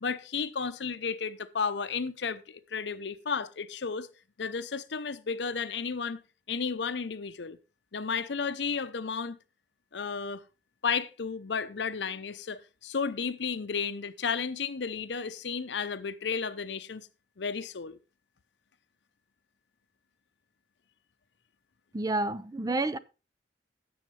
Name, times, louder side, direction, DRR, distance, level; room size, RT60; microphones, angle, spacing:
voice 1, 0.0-4.1 4.4-6.2 6.5-7.6 7.9-9.4 9.9-10.4 10.8-17.1 17.4-18.0, left 5 dB, 70° left, 0.7 m, -33 dB
voice 2, 21.9-23.0, right 2 dB, 20° right, 0.5 m, -29 dB
16.5 x 6.4 x 3.2 m
head